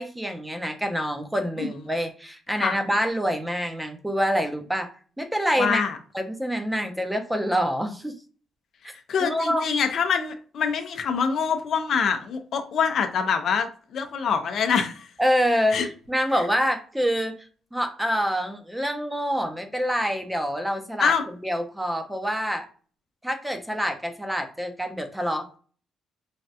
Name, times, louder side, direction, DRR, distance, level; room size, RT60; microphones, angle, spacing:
voice 1, 0.0-4.9 5.2-5.8 6.1-8.2 9.2-9.6 15.2-17.3 17.7-21.1 21.4-22.7 23.2-25.6, equal, 5° right, 6 dB, 0.6 m, -26 dB
voice 2, 5.6-6.0 9.1-15.1 15.7-15.9 21.0-21.2, left 6 dB, 65° left, 7 dB, 0.5 m, -25 dB
3.2 x 2.3 x 2.7 m, 0.40 s
cardioid pair, 90°, 0 cm